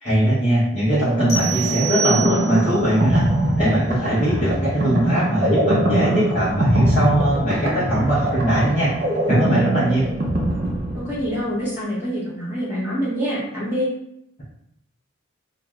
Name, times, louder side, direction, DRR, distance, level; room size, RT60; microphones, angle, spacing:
voice 1, 0.0-3.3 3.6-8.9 9.3-10.1, right 1 dB, 30° left, -11 dB, 0.8 m, -20 dB
sound 1, 0.9-11.4, right 1 dB, 45° right, 0.5 m, -22 dB
sound 2, 1.3-2.8, right 6 dB, 70° left, 0.8 m, -26 dB
voice 2, 10.9-13.9, equal, 10° right, -8 dB, 1.0 m, -26 dB
2.4 x 2.4 x 3.1 m, 0.78 s
head